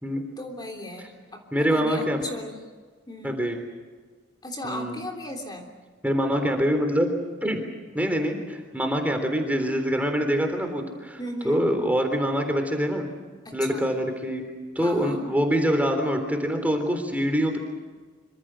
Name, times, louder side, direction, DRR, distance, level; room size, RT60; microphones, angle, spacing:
voice 1, 0.4-1.4 1.7-2.6 3.1-3.5 4.4-5.7 11.2-11.6 13.4-13.9 14.8-15.3, left 1 dB, 20° left, 2 dB, 3.3 m, -36 dB
voice 2, 1.5-2.2 3.2-3.6 4.6-5.0 6.0-7.1 7.4-7.6 7.9-11.2 11.4-13.1 13.5-14.4 14.8-17.6, equal, 10° right, 5 dB, 3.6 m, -25 dB
26.5 x 25.5 x 6.4 m, 1.4 s
head